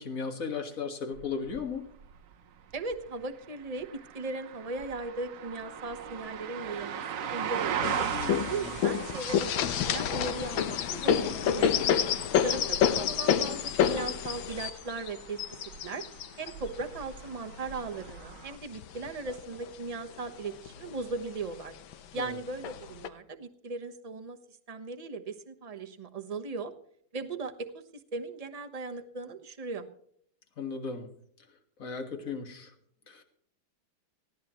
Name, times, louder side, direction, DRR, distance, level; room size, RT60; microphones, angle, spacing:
voice 1, 0.0-1.9 8.1-8.7 22.1-22.4 30.6-31.1 31.8-32.7 33.1-33.2, left 5 dB, 40° left, 5 dB, 2.0 m, -36 dB
sound 1, 1.1-18.6, right 8 dB, 65° right, 0.8 m, -39 dB
voice 2, 2.7-8.1 8.5-11.9 12.4-15.4 15.8-16.0 16.4-21.7 22.1-24.4 24.7-26.7 27.1-27.7 28.1-29.9, right 3 dB, 30° right, 5 dB, 0.7 m, -37 dB
sound 2, 7.8-18.1 18.7-19.7 20.1-20.2 20.5-21.2 21.9-22.0 22.6-23.1, left 9 dB, 70° left, 1.6 m, -28 dB
19.5 x 15.5 x 3.1 m, 0.64 s
omnidirectional pair, 2.4 m